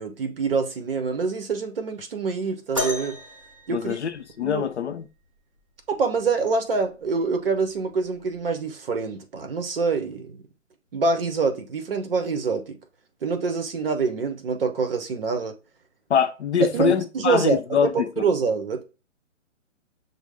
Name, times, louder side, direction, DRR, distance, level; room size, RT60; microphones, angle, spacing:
voice 1, 0.0-3.2 3.7-4.0 4.4-4.7 5.9-10.5 10.9-12.8 13.2-15.5 16.6-18.8, right 4 dB, 45° right, 0.9 m, -25 dB
sound 1, 2.7-4.6 6.3-6.4 7.2-7.4 8.3-8.4, left 2 dB, 30° right, 0.4 m, -33 dB
voice 2, 3.7-5.0 16.1-18.2, left 7 dB, 60° left, 0.6 m, -24 dB
6.2 x 2.1 x 3.5 m
hypercardioid pair, 165°, 38 cm